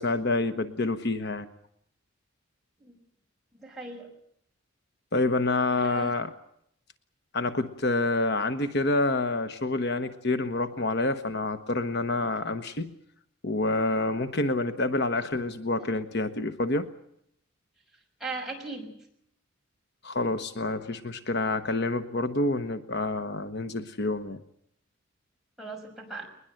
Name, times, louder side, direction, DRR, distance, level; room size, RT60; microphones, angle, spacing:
voice 1, 0.0-1.5 5.1-6.3 7.3-12.9 13.4-16.9 20.0-24.4, left 2 dB, 55° left, 9 dB, 1.2 m, -28 dB
voice 2, 3.6-4.1 5.8-6.1 18.2-18.9 25.6-26.3, right 3 dB, ahead, -2 dB, 6.0 m, -38 dB
21.5 x 21.0 x 7.9 m, 0.72 s
head